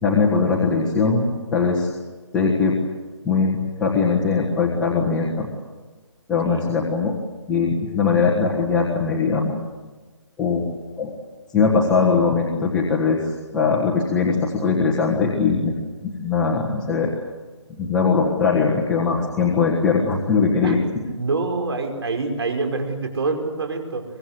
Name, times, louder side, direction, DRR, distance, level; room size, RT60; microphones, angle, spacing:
voice 1, 0.0-1.9 2.3-2.8 3.2-5.5 6.3-7.1 7.5-9.6 10.4-10.6 11.0-11.1 11.5-13.2 13.5-15.7 16.0-17.1 17.8-21.0, left 4 dB, 5° left, -4 dB, 1.5 m, -20 dB
voice 2, 21.2-24.0, right 3 dB, 55° right, 4 dB, 5.3 m, -26 dB
24.0 x 22.0 x 8.1 m, 1.3 s
hypercardioid pair, 170°, 16 cm